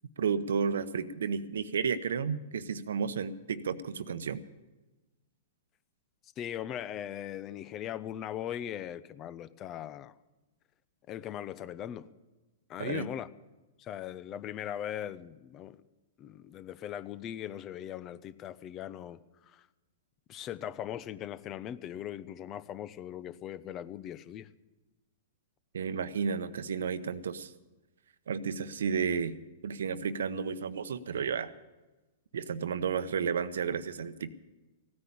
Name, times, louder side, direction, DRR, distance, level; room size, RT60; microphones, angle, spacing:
voice 1, 0.2-4.4 12.8-13.1 25.7-27.5 28.3-29.3 29.6-31.5 32.3-34.3, right 6 dB, 80° right, 14 dB, 0.9 m, -32 dB
voice 2, 6.4-10.1 11.1-12.1 12.7-13.3 13.8-15.8 16.2-19.7 20.3-24.5, left 10 dB, 30° left, 16 dB, 0.8 m, -39 dB
16.5 x 9.7 x 8.7 m, 1.1 s
hypercardioid pair, 125°, 0 cm